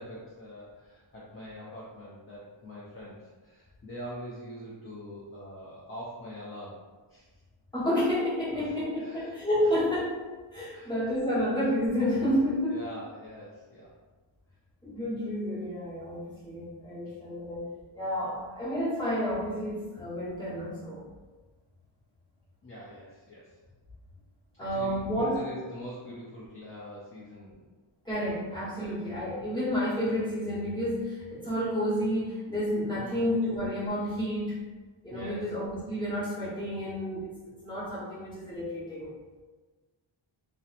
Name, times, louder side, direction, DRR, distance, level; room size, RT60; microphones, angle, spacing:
voice 1, 0.0-6.7 7.1-7.3 8.5-9.7 10.7-11.0 12.7-13.9 17.1-17.2 22.6-23.5 24.7-27.7 28.8-28.9 33.0-33.4 35.1-35.5, equal, 30° left, -7 dB, 0.4 m, -44 dB
voice 2, 7.7-10.2 10.5-12.9 14.8-17.7 17.9-21.0 24.6-25.4 28.0-34.6 35.0-39.1, equal, 10° left, -11 dB, 1.1 m, -30 dB
2.8 x 2.1 x 2.4 m, 1.3 s
wide cardioid pair, 140°, 48 cm